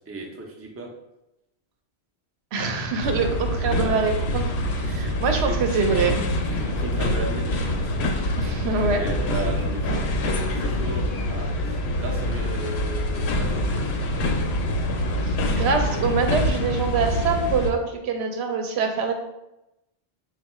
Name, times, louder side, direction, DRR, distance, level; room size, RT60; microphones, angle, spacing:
voice 1, 0.1-0.9 3.7-4.1 4.9-5.6 6.5-7.5 7.8-8.0 8.4-8.5 8.8-10.0 10.5-14.0, right 3 dB, 25° right, 0 dB, 0.3 m, -35 dB
voice 2, 2.5-6.2 8.4-9.1 15.2-19.1, right 4 dB, 85° right, 4 dB, 0.8 m, -25 dB
sound 1, 3.0-17.7, left 1 dB, 85° left, 0.8 m, -25 dB
3.6 x 2.3 x 4.1 m, 0.92 s
omnidirectional pair, 1.1 m